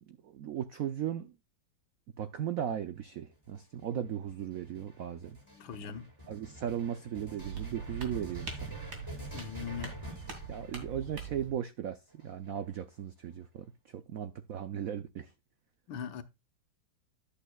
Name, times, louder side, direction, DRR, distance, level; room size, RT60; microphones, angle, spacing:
voice 1, 0.1-1.3 2.2-5.4 6.3-8.7 9.8-9.9 10.5-13.7 13.9-15.3, right 9 dB, 80° right, 0.7 m, -37 dB
sound 1, 3.3-11.3 12.1-12.9, equal, 10° right, 6.0 m, -48 dB
voice 2, 5.5-6.0 9.3-9.9 15.9-16.2, left 7 dB, 70° left, 1.8 m, -40 dB
sound 2, 7.4-11.5, right 5 dB, 65° right, 3.1 m, -42 dB
11.5 x 8.6 x 2.3 m
omnidirectional pair, 2.3 m